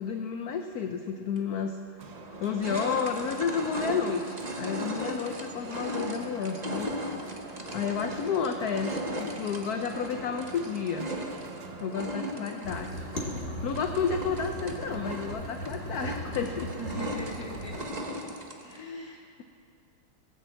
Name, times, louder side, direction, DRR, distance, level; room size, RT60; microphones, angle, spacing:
voice 1, 0.0-1.8 2.4-6.9 7.7-11.1 11.8-13.1 13.6-16.7 18.6-19.4, left 6 dB, 70° left, 5 dB, 0.9 m, -31 dB
sound 1, 1.4-1.5 2.0-18.8, right 1 dB, 35° right, 0.6 m, -37 dB
sound 2, 2.0-12.6, right 7 dB, 65° right, 1.1 m, -51 dB
sound 3, 12.6-17.9, equal, 30° left, 2.2 m, -38 dB
voice 2, 16.8-18.0 18.6-19.4, right 1 dB, 15° right, -3 dB, 1.4 m, -42 dB
19.5 x 7.0 x 7.6 m, 2.6 s
omnidirectional pair, 2.3 m